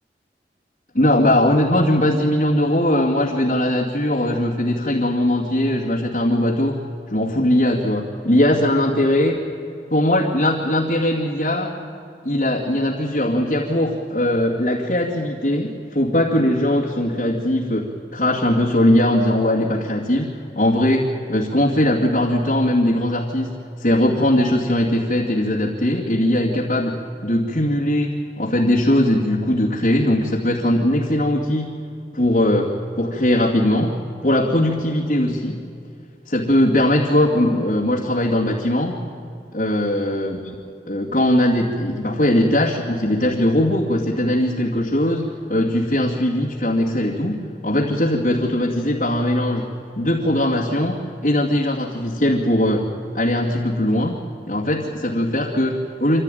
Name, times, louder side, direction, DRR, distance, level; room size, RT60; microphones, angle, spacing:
voice 1, 0.9-6.8 7.1-9.3 9.9-11.7 12.2-31.8 32.1-34.0 34.2-35.6 36.3-39.0 39.5-40.4 40.9-49.7 50.0-52.9 53.1-56.2, left 1 dB, 45° left, -6 dB, 2.4 m, -20 dB
25.5 x 15.5 x 9.2 m, 2.5 s
head